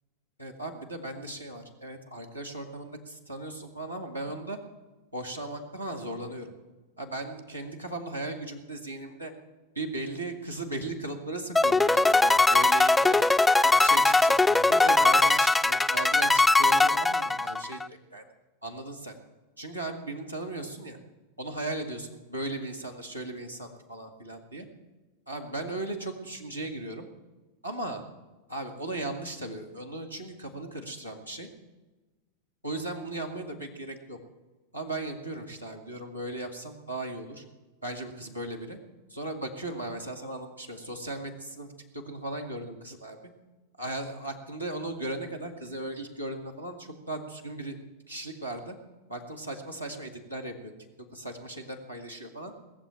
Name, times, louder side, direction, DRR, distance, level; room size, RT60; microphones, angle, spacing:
voice 1, 0.4-4.6 5.1-6.5 7.0-9.3 9.8-13.3 13.6-18.2 18.6-19.2 19.6-21.0 21.4-24.7 25.3-27.1 27.6-28.0 28.5-31.5 32.6-34.2 34.7-37.4 37.8-38.8 39.1-41.7 41.9-43.2 43.8-47.8 48.1-48.7 49.1-50.7 51.0-52.5, right 2 dB, 85° right, 2 dB, 2.0 m, -37 dB
sound 1, 11.6-17.9, left 2 dB, 5° left, 0.4 m, -21 dB
19.5 x 7.3 x 8.9 m, 1.2 s
figure-of-eight pair, 90°, 0 cm